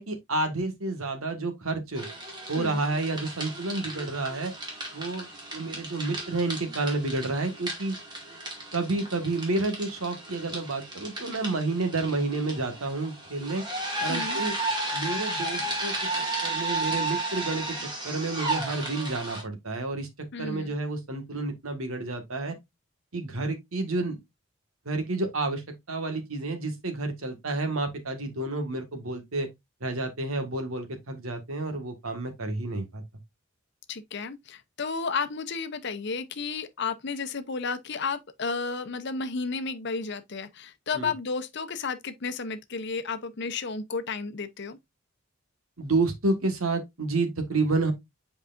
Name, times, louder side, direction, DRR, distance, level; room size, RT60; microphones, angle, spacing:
voice 1, 0.0-2.0 2.5-4.5 4.9-5.3 5.5-8.0 8.7-13.6 14.0-14.5 14.9-15.9 16.4-17.8 18.0-20.1 20.4-22.6 23.1-24.1 24.8-29.5 29.8-33.0 40.9-41.1 45.8-47.9, right 2 dB, 85° right, 1.7 m, -30 dB
sound 1, 2.0-19.4, right 2 dB, 20° right, 2.1 m, -34 dB
voice 2, 14.1-14.4 20.3-20.7 33.9-44.8, left 4 dB, 55° left, 0.7 m, -32 dB
7.8 x 4.8 x 2.5 m
head